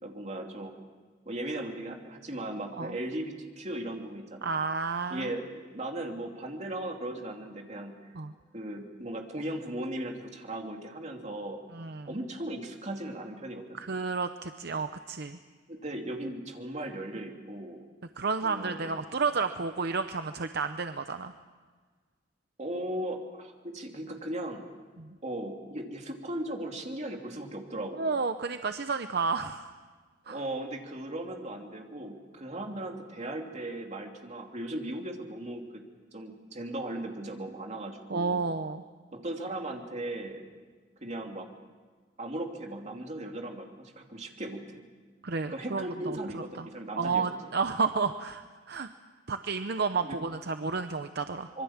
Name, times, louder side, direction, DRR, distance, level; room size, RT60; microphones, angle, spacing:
voice 1, 0.0-0.7 1.3-4.6 5.1-8.1 8.5-11.6 12.1-13.8 15.7-17.8 18.4-18.9 22.6-24.7 25.2-28.1 30.3-35.8 36.1-38.4 39.1-40.4 41.0-41.5 42.2-44.9 45.5-47.4 50.0-50.2 51.5-51.6, right 1 dB, 40° right, 2 dB, 2.9 m, -37 dB
voice 2, 4.4-5.3 8.1-8.3 11.7-12.1 13.7-15.4 18.2-21.3 25.0-25.2 28.0-29.7 30.3-30.4 38.1-38.8 45.2-46.7 47.0-48.9 49.3-51.5, right 4 dB, 60° right, 8 dB, 0.8 m, -31 dB
25.5 x 23.0 x 7.3 m, 1.5 s
head